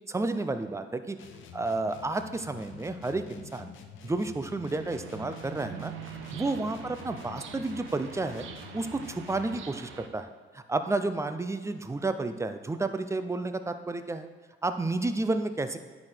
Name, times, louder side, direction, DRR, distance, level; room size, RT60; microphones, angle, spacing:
voice 1, 0.1-1.2 1.5-3.7 4.0-5.9 6.3-8.4 8.7-14.3 14.6-15.8, right 2 dB, 15° right, 9 dB, 0.6 m, -31 dB
sound 1, 1.2-9.7, left 7 dB, 80° left, 0.8 m, -48 dB
sound 2, 4.7-10.1, right 9 dB, 80° right, 0.7 m, -44 dB
9.4 x 5.0 x 4.4 m, 1.5 s
cardioid pair, 90°, 20 cm